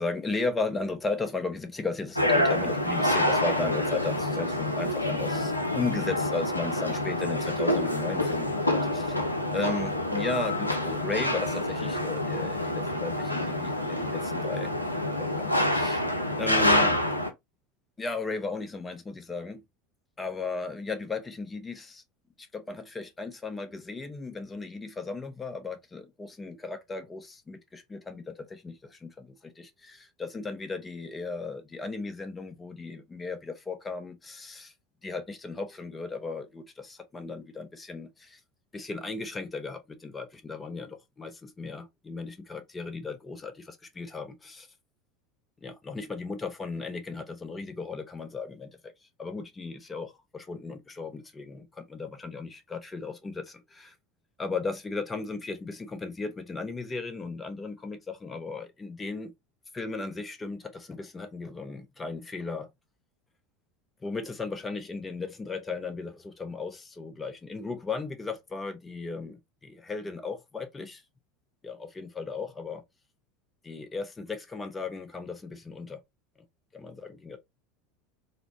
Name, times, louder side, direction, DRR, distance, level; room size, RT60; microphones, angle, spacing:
voice 1, 0.0-9.1 9.5-14.7 15.1-16.0 16.4-17.0 18.0-19.6 20.2-22.0 22.4-34.7 35.0-38.4 38.7-44.7 45.6-48.7 49.2-53.9 54.4-59.3 59.7-62.7 64.0-71.0 71.6-72.8 73.6-76.0 76.7-77.4, left 3 dB, 20° left, 0.6 m, -36 dB
sound 1, 2.2-17.3, left 1 dB, 90° left, 0.4 m, -27 dB
3.0 x 2.0 x 2.7 m
figure-of-eight pair, 75°, 0 cm